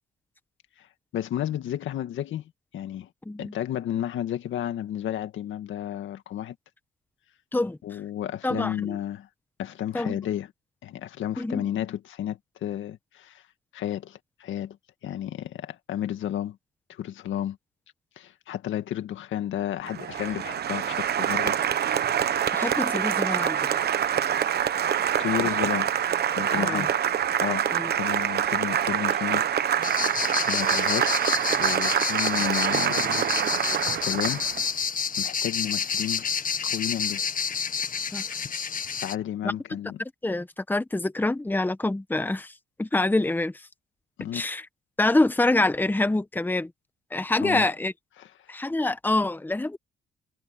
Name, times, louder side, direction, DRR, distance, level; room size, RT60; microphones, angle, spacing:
voice 1, 1.1-2.4 2.7-3.1 3.4-6.6 7.8-9.3 9.6-10.5 10.8-13.4 13.7-14.8 15.0-16.6 16.9-17.6 18.2-21.6 25.2-25.9 26.4-26.9 27.4-29.4 30.3-31.1 31.6-33.7 34.0-34.5 35.2-36.3 36.6-37.2 38.9-40.0 44.2-44.4 47.4-47.7 48.2-48.6, left 11 dB, 75° left, 2.0 m, -32 dB
voice 2, 8.4-9.0 9.9-10.2 11.4-11.6 22.5-23.9 26.6-26.9 27.7-27.9 38.1-38.2 39.4-39.5 40.0-42.5 42.8-43.7 44.3-44.6 45.0-46.7 47.1-47.9 48.5-49.8, left 2 dB, 10° left, 1.2 m, -26 dB
Applause, 19.9-34.7, right 9 dB, 55° right, 1.0 m, -25 dB
sound 1, 29.8-39.2, left 6 dB, 45° left, 1.7 m, -29 dB
cardioid pair, 90°, 20 cm